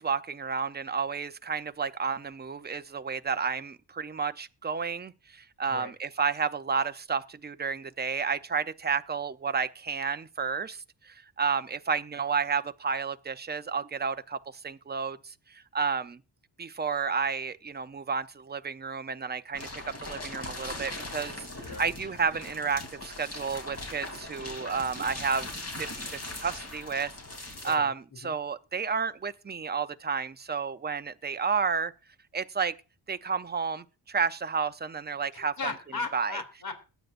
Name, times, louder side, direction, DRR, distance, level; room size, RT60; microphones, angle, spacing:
voice 1, 0.0-14.4 14.6-16.2 16.6-25.5 25.8-27.1 27.6-31.9 32.3-32.7 33.1-35.5 36.1-36.4, right 5 dB, 25° right, 0.7 m, -31 dB
sound 1, 19.5-27.8, left 2 dB, 35° left, 3.3 m, -40 dB
voice 2, 35.3-36.7, left 4 dB, 55° left, 3.0 m, -36 dB
21.0 x 9.2 x 2.6 m
cardioid pair, 95°, 43 cm